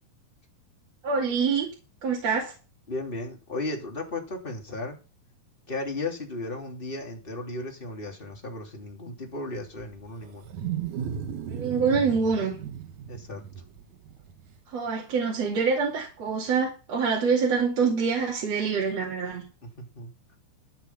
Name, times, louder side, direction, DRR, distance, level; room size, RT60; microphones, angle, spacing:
voice 1, 1.0-1.7 2.0-2.5 11.5-12.6 14.7-19.4, right 5 dB, 45° right, -3 dB, 3.3 m, -25 dB
voice 2, 2.9-5.0 5.7-10.5 13.1-13.4 19.9-20.1, left 2 dB, 15° left, 1 dB, 2.5 m, -35 dB
Wild animals, 9.5-14.6, right 8 dB, 60° right, 2.4 m, -36 dB
13.5 x 6.8 x 5.8 m, 0.33 s
omnidirectional pair, 4.6 m